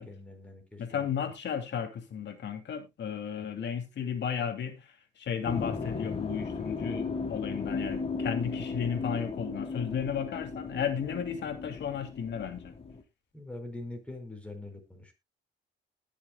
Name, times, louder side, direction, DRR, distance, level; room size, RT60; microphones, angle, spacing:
voice 1, 0.0-1.1 13.3-15.1, left 2 dB, 5° left, 4.6 m, -43 dB
voice 2, 0.8-12.7, left 7 dB, 60° left, 2.8 m, -34 dB
sound 1, 5.5-13.0, left 4 dB, 30° left, 1.9 m, -36 dB
20.5 x 7.3 x 2.3 m
cardioid pair, 90°, 20 cm